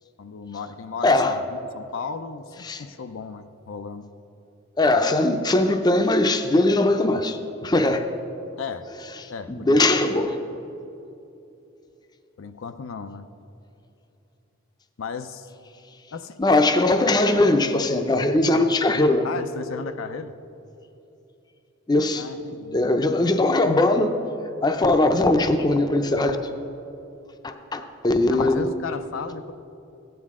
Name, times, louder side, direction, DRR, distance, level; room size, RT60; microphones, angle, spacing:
voice 1, 0.2-4.1 8.6-8.9 9.3-10.3 12.4-13.3 15.0-15.5 16.1-16.6 19.2-20.3 22.2-22.8 28.3-29.5, left 5 dB, 85° left, 9 dB, 0.5 m, -35 dB
voice 2, 1.0-1.4 2.6-2.8 4.8-8.1 9.5-10.4 10.7-10.8 16.4-19.3 21.9-22.2 22.7-24.1 24.6-26.4 27.4-28.7, left 2 dB, 20° left, 7 dB, 0.5 m, -20 dB
15.0 x 9.4 x 3.6 m, 2.9 s
head